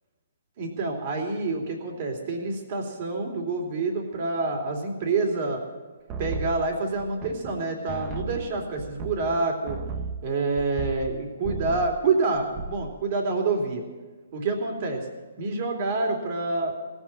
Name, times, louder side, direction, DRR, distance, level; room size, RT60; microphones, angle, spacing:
voice 1, 0.6-5.6 6.2-9.8 10.2-13.8 14.3-15.1 15.4-16.7, right 3 dB, 45° right, 2 dB, 3.0 m, -27 dB
sound 1, 6.1-7.6 7.9-11.2 11.4-12.0 12.3-12.9, right 4 dB, 25° right, 1.0 m, -35 dB
17.0 x 8.2 x 8.9 m, 1.4 s
hypercardioid pair, 135°, 0 cm